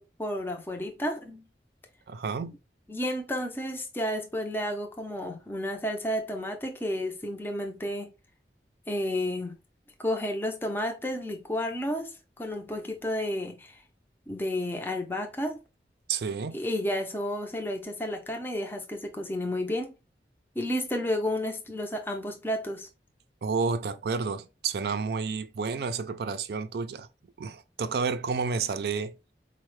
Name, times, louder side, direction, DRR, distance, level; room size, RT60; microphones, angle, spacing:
voice 1, 0.0-1.4 2.9-8.1 8.9-9.5 10.0-13.8 14.3-15.6 16.5-19.9 20.6-22.9, left 1 dB, 10° left, 0.5 m, -31 dB
voice 2, 2.1-2.5 16.1-16.6 23.4-27.1 27.4-29.1, right 5 dB, 65° right, 0.4 m, -30 dB
4.4 x 2.1 x 3.1 m
head